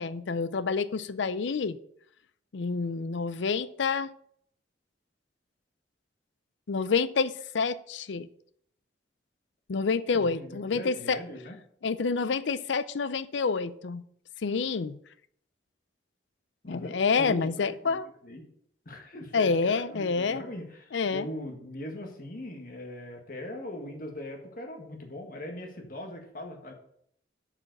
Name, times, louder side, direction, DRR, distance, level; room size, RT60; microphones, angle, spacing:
voice 1, 0.0-1.8 2.5-4.1 6.7-8.3 9.7-11.2 11.8-14.0 14.4-15.0 16.7-18.1 19.3-20.4 20.9-21.3, left 4 dB, 80° left, 15 dB, 0.5 m, -28 dB
voice 2, 10.1-11.6 16.6-18.4 18.9-26.7, left 1 dB, 50° left, 3 dB, 1.6 m, -40 dB
8.6 x 5.0 x 6.5 m, 0.68 s
head